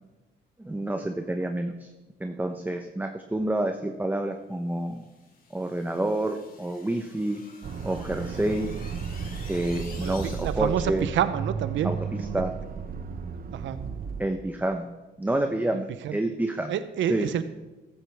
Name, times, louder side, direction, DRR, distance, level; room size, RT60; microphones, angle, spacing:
voice 1, 0.6-1.9 2.2-5.0 5.5-7.4 7.8-8.7 9.5-11.1 11.8-12.5 14.2-14.9 15.2-16.7 17.1-17.4, right 1 dB, 10° right, 5 dB, 0.9 m, -28 dB
sound 1, 4.9-10.9, left 4 dB, 45° left, 2.8 m, -50 dB
Accelerating revving vroom, 7.6-14.2, right 6 dB, 45° right, 1.1 m, -34 dB
voice 2, 10.0-11.9 13.5-13.8 16.0-16.2 16.7-17.4, right 10 dB, 70° right, 12 dB, 0.7 m, -28 dB
15.0 x 13.0 x 3.5 m, 1.1 s
cardioid pair, 90°, 20 cm